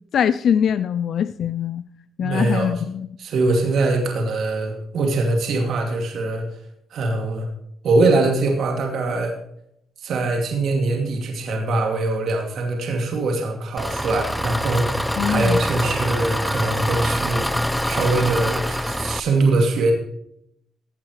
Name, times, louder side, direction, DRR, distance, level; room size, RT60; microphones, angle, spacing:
voice 1, 0.1-1.8 2.2-3.1 15.2-15.6, left 8 dB, 65° left, 14 dB, 0.4 m, -22 dB
voice 2, 2.2-2.7 3.2-6.4 6.9-7.5 7.8-9.3 10.0-17.5 17.9-19.9, right 2 dB, 65° right, 2 dB, 2.5 m, -22 dB
Engine, 13.8-19.2, equal, ahead, 0.5 m, -24 dB
16.0 x 8.9 x 3.2 m, 0.74 s
cardioid pair, 90°, 0 cm